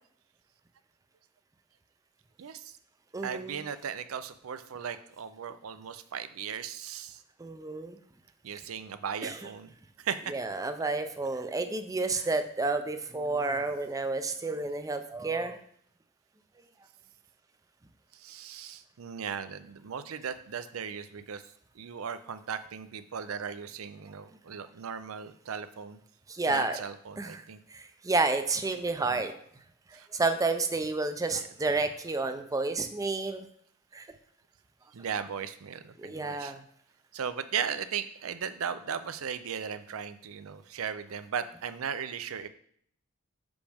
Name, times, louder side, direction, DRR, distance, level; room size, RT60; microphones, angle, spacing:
voice 1, 2.4-2.7 3.2-7.2 8.4-10.3 12.1-12.3 18.1-26.0 26.5-27.6 29.1-29.2 29.9-30.1 31.3-31.5 34.9-36.5 37.1-42.5, right 7 dB, 80° right, 11 dB, 0.5 m, -37 dB
voice 2, 3.1-3.6 7.4-8.0 9.2-9.4 10.3-15.6 26.3-26.8 27.2-27.4 27.7-29.4 30.1-33.5 33.9-34.1 36.0-36.6, right 3 dB, 15° right, 8 dB, 0.5 m, -30 dB
6.2 x 5.1 x 3.4 m, 0.64 s
head